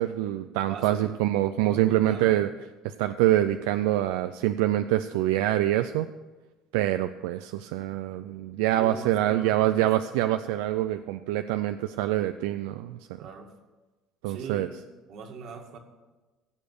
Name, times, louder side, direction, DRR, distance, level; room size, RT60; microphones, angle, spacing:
voice 1, 0.0-2.5 2.8-6.1 6.7-13.2 14.2-14.7, right 14 dB, 85° right, 9 dB, 0.4 m, -25 dB
voice 2, 0.7-1.1 1.6-2.4 8.8-9.9 13.2-13.5 14.3-14.7 15.1-15.8, right 5 dB, 55° right, 4 dB, 2.1 m, -41 dB
16.5 x 7.0 x 6.5 m, 1.2 s
supercardioid pair, 100°, 0 cm